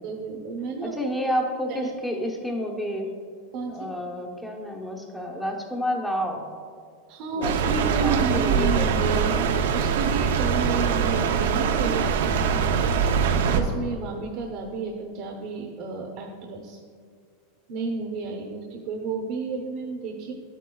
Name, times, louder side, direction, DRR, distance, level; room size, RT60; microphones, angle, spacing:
voice 1, 0.0-1.0 1.2-1.3 1.7-1.9 3.5-3.9 7.1-9.4 9.7-13.1 13.4-16.8 17.7-20.3, right 4 dB, 50° right, 1 dB, 0.9 m, -31 dB
voice 2, 0.8-3.1 3.7-6.4 7.3-8.9, equal, 5° left, 0 dB, 0.9 m, -30 dB
sound 1, 7.4-13.6, right 6 dB, 85° right, 0.6 m, -23 dB
10.5 x 8.1 x 2.3 m, 2.1 s
supercardioid pair, 150°, 0 cm